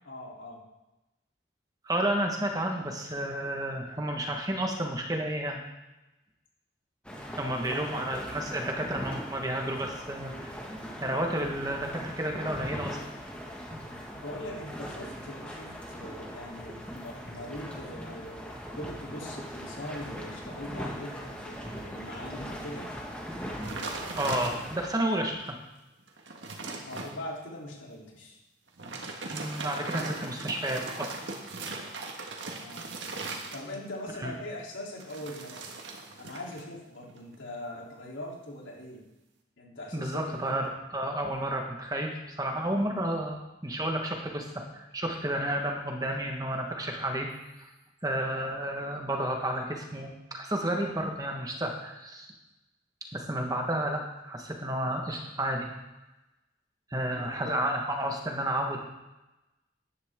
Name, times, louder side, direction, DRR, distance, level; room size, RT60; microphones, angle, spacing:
voice 1, 0.0-0.6 7.4-8.1 14.1-22.9 26.8-28.4 32.6-32.9 33.5-35.7 36.2-39.0 39.6-40.6 48.2-48.5 57.1-57.6, left 1 dB, 90° left, -3 dB, 3.4 m, -41 dB
voice 2, 1.8-5.6 7.4-10.5 11.0-13.0 24.1-25.6 29.3-31.1 34.2-34.3 39.9-43.4 43.6-47.3 47.6-47.7 48.0-52.3 53.1-55.7 56.9-58.8, right 1 dB, 20° right, 2 dB, 1.4 m, -31 dB
sound 1, 7.0-24.9, equal, 5° left, 1.7 m, -40 dB
sound 2, 23.6-24.9 25.5-25.6 26.0-27.1 28.7-34.0 35.0-36.7 36.9-37.3, right 3 dB, 80° right, 1.7 m, -39 dB
14.0 x 11.0 x 3.7 m, 1.0 s
head